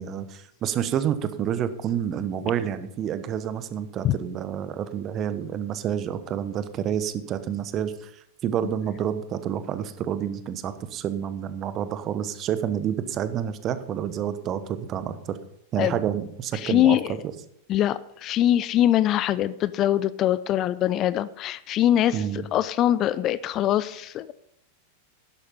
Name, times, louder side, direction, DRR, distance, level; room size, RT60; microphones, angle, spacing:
voice 1, 0.0-8.1 8.4-15.4 15.7-17.0 22.1-22.4, right 9 dB, 30° right, 12 dB, 1.1 m, -29 dB
voice 2, 16.5-17.2 17.7-24.3, left 12 dB, 35° left, 17 dB, 0.5 m, -23 dB
11.5 x 11.5 x 5.5 m, 0.72 s
figure-of-eight pair, 90°, 0 cm